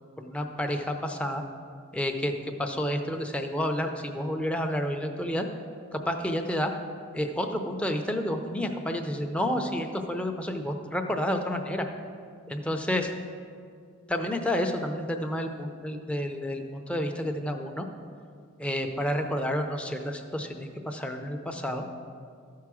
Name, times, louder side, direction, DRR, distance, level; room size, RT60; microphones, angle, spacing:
voice 1, 0.2-1.4 1.9-5.5 5.9-6.7 7.1-11.9 12.5-13.1 14.1-17.9 18.6-21.8, equal, 5° left, 4 dB, 0.6 m, -30 dB
13.5 x 4.7 x 6.2 m, 2.2 s
head